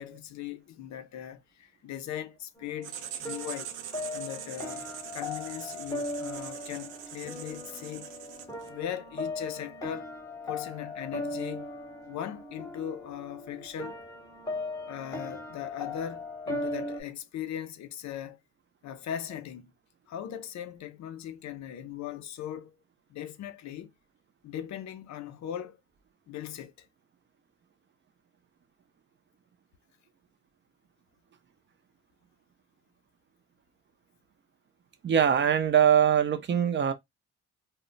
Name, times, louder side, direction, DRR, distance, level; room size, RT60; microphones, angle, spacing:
voice 1, 0.0-3.7 4.1-4.9 5.1-8.1 8.7-10.2 10.5-11.7 12.1-14.0 14.9-18.4 18.8-19.7 20.1-22.8 23.1-23.9 24.4-25.8 26.3-26.9, left 10 dB, 65° left, 0.5 m, -39 dB
sound 1, 2.6-17.0, left 2 dB, 10° left, 0.9 m, -38 dB
Writing, 2.8-8.8, right 9 dB, 85° right, 0.5 m, -43 dB
voice 2, 35.0-36.9, right 9 dB, 40° right, 0.5 m, -22 dB
2.1 x 2.1 x 3.8 m
cardioid pair, 90°, 30 cm